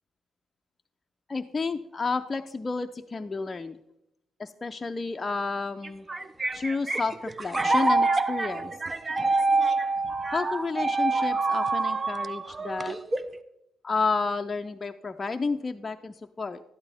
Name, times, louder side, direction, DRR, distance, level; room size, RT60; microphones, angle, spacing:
voice 1, 1.3-3.8 4.4-6.1 6.5-8.7 10.3-13.0 13.8-16.6, left 4 dB, 25° left, 6 dB, 0.5 m, -31 dB
sound 1, 5.8-13.4, right 3 dB, 25° right, 0.6 m, -26 dB
12.5 x 11.5 x 3.5 m, 0.83 s
cardioid pair, 90°, 0 cm